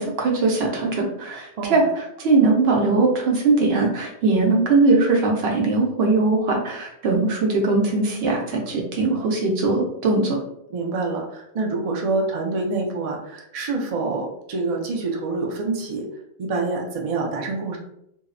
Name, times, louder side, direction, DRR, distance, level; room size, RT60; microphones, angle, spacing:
voice 1, 0.0-1.8 2.2-10.4, right 3 dB, 70° right, 1 dB, 0.8 m, -20 dB
voice 2, 10.7-16.0 16.4-17.8, right 3 dB, 55° right, 0 dB, 0.4 m, -26 dB
2.7 x 2.0 x 2.4 m, 0.76 s
omnidirectional pair, 1.1 m